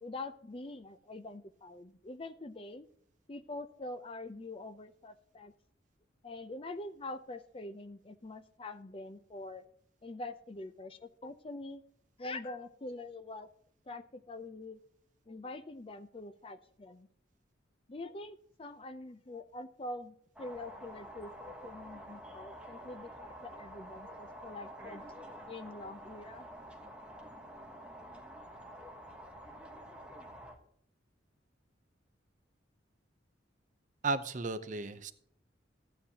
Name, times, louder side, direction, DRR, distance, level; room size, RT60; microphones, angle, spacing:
voice 1, 0.0-2.9 3.3-5.5 6.2-9.7 10.0-11.8 12.2-13.5 13.9-14.8 15.3-17.1 17.9-25.0 25.5-26.5, left 2 dB, 30° left, 10 dB, 0.5 m, -45 dB
sound 1, 20.4-30.6, equal, 5° right, 1.3 m, -49 dB
voice 2, 34.0-35.1, right 3 dB, 40° right, 10 dB, 0.7 m, -34 dB
14.0 x 9.4 x 2.9 m, 0.65 s
head